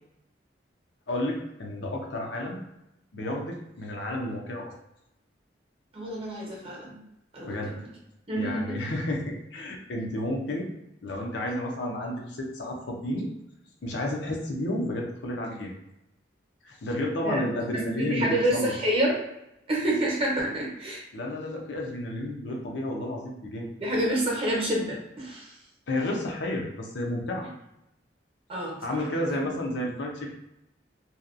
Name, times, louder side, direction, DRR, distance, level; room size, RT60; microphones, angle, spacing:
voice 1, 1.1-2.6 3.1-4.6 7.4-7.8 8.4-10.7 11.0-13.3 13.8-15.7 16.6-18.7 21.1-23.7 25.9-27.5 28.8-30.3, left 1 dB, 75° left, 0 dB, 0.6 m, -31 dB
voice 2, 5.9-7.0 7.3-7.8 8.3-8.8 10.0-10.1 11.5-11.6 17.2-17.4 17.7-19.2 19.7-21.0 23.8-25.6 28.5-29.0 29.3-29.6, right 1 dB, 30° right, -4 dB, 0.8 m, -28 dB
2.7 x 2.2 x 2.5 m, 0.85 s
head